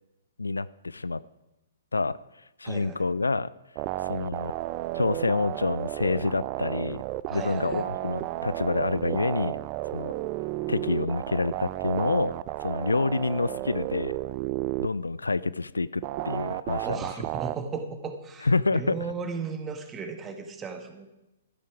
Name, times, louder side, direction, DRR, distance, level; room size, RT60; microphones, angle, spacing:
voice 1, 0.4-1.2 1.9-2.2 2.6-3.5 4.1-4.5 4.9-7.0 7.3-9.6 9.9-10.1 10.7-12.3 12.6-14.1 14.8-17.0 18.4-18.9, left 3 dB, 80° left, 18 dB, 0.4 m, -27 dB
voice 2, 2.6-3.0 7.3-7.9 16.8-21.1, right 5 dB, 15° right, 6 dB, 1.6 m, -36 dB
sound 1, 3.8-14.9 16.0-17.6, right 17 dB, 35° right, 0.4 m, -32 dB
14.5 x 12.5 x 4.7 m, 0.97 s
figure-of-eight pair, 120°, 0 cm